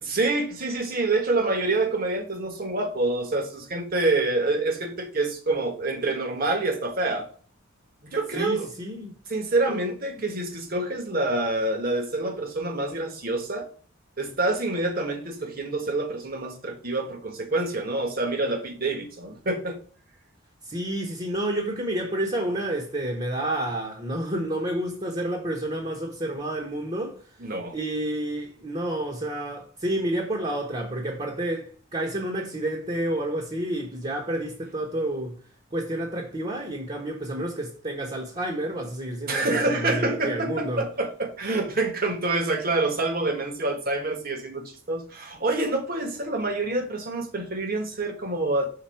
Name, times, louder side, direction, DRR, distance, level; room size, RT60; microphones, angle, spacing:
voice 1, 0.0-7.3 8.0-8.7 9.3-13.7 14.2-19.8 27.4-27.7 39.3-48.7, right 2 dB, 45° right, 1.4 m, -27 dB
voice 2, 8.3-9.2 9.7-9.8 20.7-27.2 27.7-35.4 35.7-40.8, right 1 dB, 30° right, 1.1 m, -29 dB
5.9 x 4.1 x 5.7 m
head